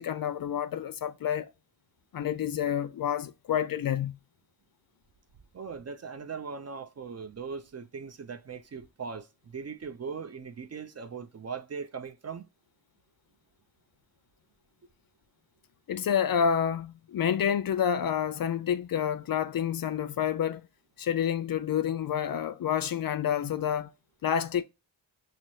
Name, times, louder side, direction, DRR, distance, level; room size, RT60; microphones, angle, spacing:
voice 1, 0.0-1.5 2.1-4.1 15.9-20.6 21.0-23.9 24.2-24.6, left 8 dB, 45° left, 0.5 m, -28 dB
voice 2, 5.5-12.5, right 5 dB, 30° right, 0.5 m, -39 dB
5.9 x 2.1 x 2.7 m
supercardioid pair, 45°, 49 cm